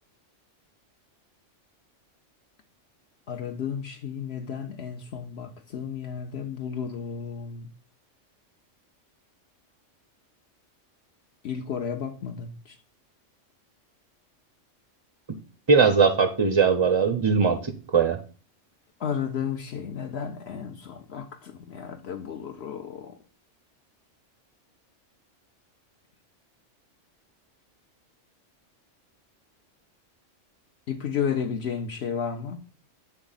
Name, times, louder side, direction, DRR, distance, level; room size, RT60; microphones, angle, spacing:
voice 1, 3.3-7.7 11.4-12.8 19.0-23.1 30.9-32.6, left 7 dB, 65° left, 0.9 m, -33 dB
voice 2, 15.7-18.2, right 5 dB, 45° right, 0.3 m, -20 dB
7.4 x 3.5 x 3.9 m
omnidirectional pair, 1.3 m